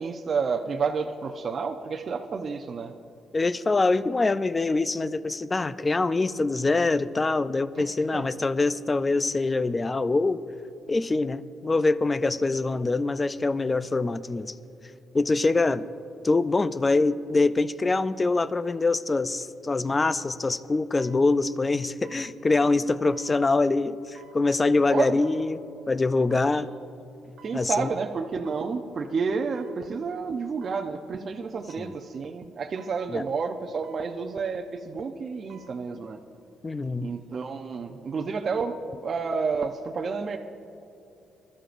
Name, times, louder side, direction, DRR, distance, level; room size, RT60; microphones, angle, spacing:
voice 1, 0.0-2.9 7.8-8.2 24.9-25.1 26.5-26.6 27.4-36.2 37.0-40.4, right 5 dB, 45° right, 4 dB, 0.6 m, -30 dB
voice 2, 3.3-10.4 10.9-14.5 15.1-15.9 16.2-26.7 27.5-27.9 31.8-31.9 33.1-33.2 36.6-37.1, left 3 dB, 25° left, 14 dB, 0.4 m, -24 dB
sound 1, 18.7-18.9 19.9-20.1 21.0-21.2 22.0-22.3 23.1-23.3 24.2-24.4 25.2-25.5 26.3-26.6 27.4-27.6 28.4-28.7 29.5-29.8 30.6-30.9 31.7-31.9 32.8-33.0 33.8-34.1 35.3-35.8 36.2-36.3, right 6 dB, 75° right, 1.0 m, -52 dB
23.0 x 13.0 x 2.6 m, 2.7 s
cardioid pair, 90°, 0 cm